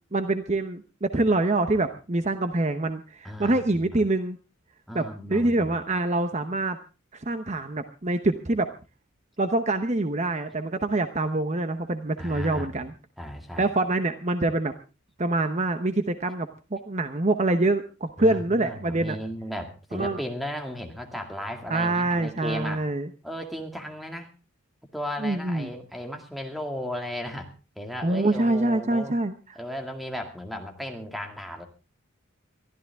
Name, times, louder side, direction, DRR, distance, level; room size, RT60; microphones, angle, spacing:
voice 1, 0.1-4.4 4.9-6.8 7.1-8.7 9.4-12.9 13.6-14.7 15.2-19.2 19.9-20.2 21.7-23.1 25.2-25.7 28.0-29.3, right 2 dB, 35° right, 9 dB, 0.9 m, -25 dB
voice 2, 3.2-3.9 4.9-5.8 12.2-12.9 13.2-13.7 18.2-22.9 23.2-24.3 24.9-27.5 27.8-29.2 29.6-31.7, equal, ahead, 4 dB, 2.1 m, -35 dB
22.5 x 13.5 x 3.5 m, 0.32 s
head